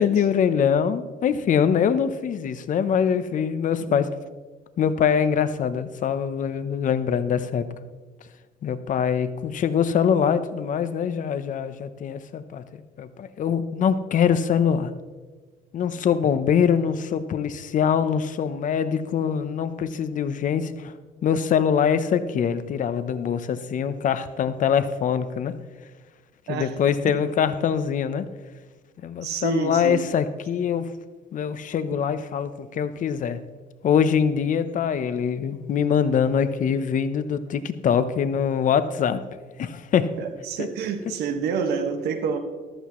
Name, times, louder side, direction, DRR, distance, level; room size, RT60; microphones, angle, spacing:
voice 1, 0.0-4.1 4.8-7.7 8.6-14.9 15.7-20.9 21.2-25.5 26.5-28.2 29.0-30.9 31.3-33.4 33.8-39.2 39.6-40.1, left 7 dB, 50° left, 12 dB, 0.8 m, -23 dB
voice 2, 29.2-30.0 40.2-42.4, right 6 dB, 80° right, 6 dB, 1.7 m, -28 dB
14.5 x 13.5 x 3.1 m, 1.3 s
cardioid pair, 110°, 17 cm